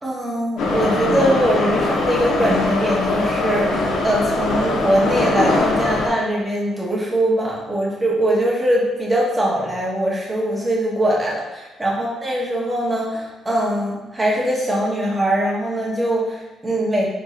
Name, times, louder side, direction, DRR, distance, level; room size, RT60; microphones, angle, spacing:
voice 1, 0.0-17.1, right 1 dB, 20° right, -4 dB, 1.2 m, -21 dB
Subway metro underground, 0.6-6.1, left 2 dB, 85° left, 0.8 m, -21 dB
4.0 x 3.8 x 2.5 m, 1.1 s
cardioid pair, 90°, 0 cm